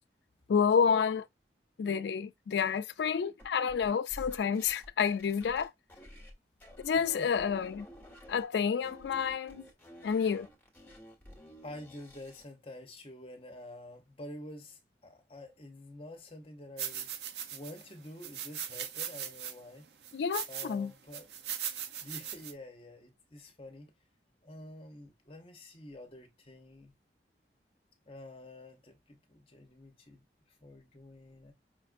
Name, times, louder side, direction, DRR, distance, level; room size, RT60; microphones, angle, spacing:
voice 1, 0.5-1.3 1.8-5.7 6.8-7.9 8.3-9.6 10.0-10.5 20.1-20.9, left 6 dB, 75° left, 0.3 m, -29 dB
sound 1, 3.4-6.3 6.6-8.4 8.8-12.5, equal, 10° left, 1.2 m, -51 dB
voice 2, 7.0-7.3 9.8-10.0 11.6-19.9 20.5-21.3 22.0-23.9 24.4-27.0 28.1-31.5, left 1 dB, 30° left, 0.9 m, -48 dB
sound 2, 16.8-17.8 18.2-19.5 20.0-20.7 21.1-22.5, right 9 dB, 70° right, 0.6 m, -39 dB
5.3 x 2.5 x 2.5 m
head